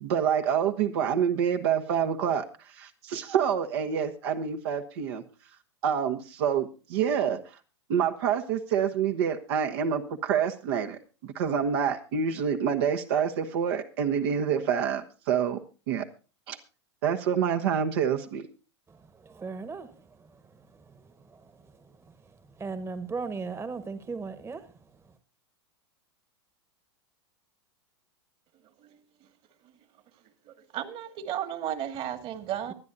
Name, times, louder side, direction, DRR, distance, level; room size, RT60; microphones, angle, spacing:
voice 1, 0.0-5.2 5.8-7.4 7.9-15.6 15.9-16.1 16.5-16.6 17.0-18.5, right 8 dB, 65° right, 6 dB, 1.3 m, -27 dB
voice 2, 18.9-25.2 32.7-32.8, right 4 dB, 20° right, 11 dB, 1.3 m, -39 dB
voice 3, 30.5-32.7, right 10 dB, 40° right, 10 dB, 2.0 m, -34 dB
24.0 x 9.6 x 2.7 m, 0.34 s
hypercardioid pair, 100°, 15 cm